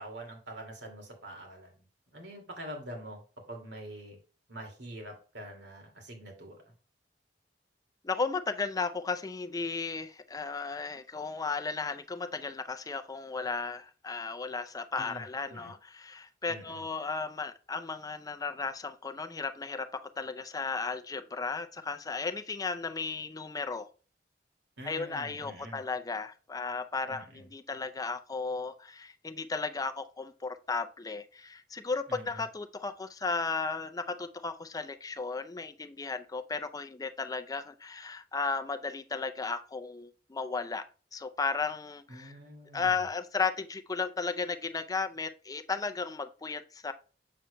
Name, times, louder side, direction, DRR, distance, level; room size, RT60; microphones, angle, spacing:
voice 1, 0.0-1.7 2.1-3.2 3.5-4.2 4.5-6.6 15.0-15.2 15.5-15.7 16.5-16.8 24.8-25.8 27.1-27.5 32.1-32.4 42.1-43.1, right 1 dB, 75° right, 2.3 m, -45 dB
voice 2, 8.0-23.9 24.8-40.8 41.1-42.3 42.7-46.9, left 4 dB, 20° left, 0.5 m, -35 dB
7.5 x 6.7 x 2.2 m
head